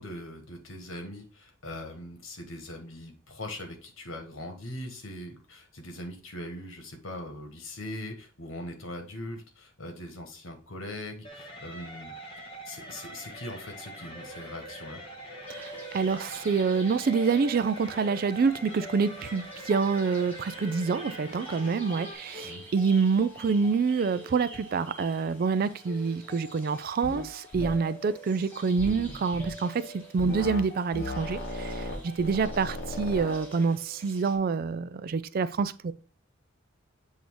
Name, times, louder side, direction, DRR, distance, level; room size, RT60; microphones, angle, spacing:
voice 1, 0.0-12.2 12.6-15.0 22.4-22.6, left 1 dB, 75° left, 1.4 m, -41 dB
sound 1, 11.2-22.1, right 1 dB, 25° left, 1.2 m, -43 dB
sound 2, 15.5-34.4, equal, 10° left, 1.6 m, -46 dB
voice 2, 15.5-35.9, right 5 dB, 45° right, 0.3 m, -27 dB
sound 3, 27.0-27.3 27.5-27.7 28.8-29.5 30.2-30.6 30.9-33.4, left 1 dB, 50° left, 1.3 m, -36 dB
7.8 x 2.7 x 4.6 m
head